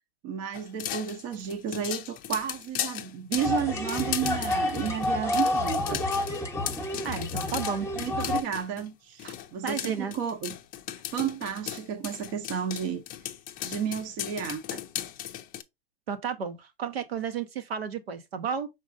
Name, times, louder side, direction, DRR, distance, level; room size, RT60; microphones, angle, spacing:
voice 1, 0.2-6.0 8.0-10.5 11.1-13.0 13.6-14.6, right 8 dB, 40° right, 0.8 m, -32 dB
sound 1, 0.5-8.9 9.2-15.6, left 12 dB, 30° left, 0.5 m, -37 dB
sound 2, 3.4-8.4, left 2 dB, 10° left, 0.9 m, -29 dB
voice 2, 7.0-7.9 9.2-9.3 9.6-10.1 14.7-14.8 16.1-18.7, right 7 dB, 80° right, 1.0 m, -32 dB
5.3 x 3.9 x 2.5 m
hypercardioid pair, 110°, 30 cm